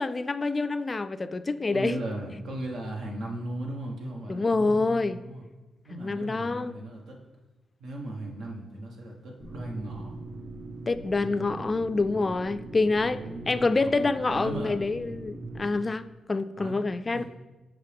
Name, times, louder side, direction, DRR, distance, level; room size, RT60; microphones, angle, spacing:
voice 1, 0.0-1.9 4.3-5.2 5.9-6.7 10.9-13.2 13.5-17.2, left 3 dB, 30° left, 13 dB, 0.3 m, -27 dB
voice 2, 1.7-5.4 5.8-7.2 7.8-10.2 13.0-14.0 14.3-14.8 16.6-16.8 17.1-17.2, right 1 dB, 80° right, 0 dB, 1.3 m, -37 dB
sound 1, 9.4-15.8, right 2 dB, 60° right, 1.7 m, -41 dB
8.2 x 5.3 x 3.4 m, 1.1 s
cardioid pair, 70°, 0 cm